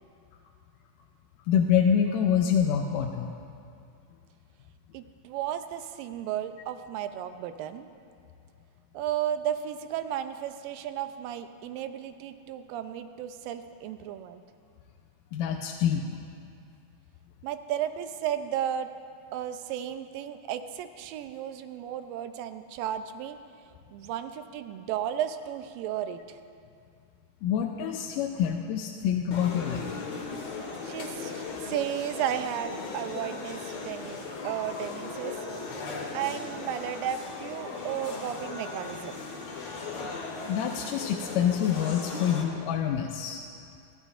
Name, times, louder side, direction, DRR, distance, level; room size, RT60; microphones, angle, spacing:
voice 1, 1.5-3.3 15.3-16.0 27.4-29.9 40.5-43.4, left 8 dB, 80° left, 2 dB, 2.1 m, -26 dB
voice 2, 4.9-7.9 8.9-14.4 17.4-18.9 19.3-23.4 23.9-26.4 30.8-35.4 36.1-39.3, right 10 dB, 85° right, 10 dB, 2.3 m, -34 dB
sound 1, 29.3-42.4, left 4 dB, 55° left, 2.4 m, -38 dB
27.5 x 11.0 x 2.5 m, 2.4 s
omnidirectional pair, 4.0 m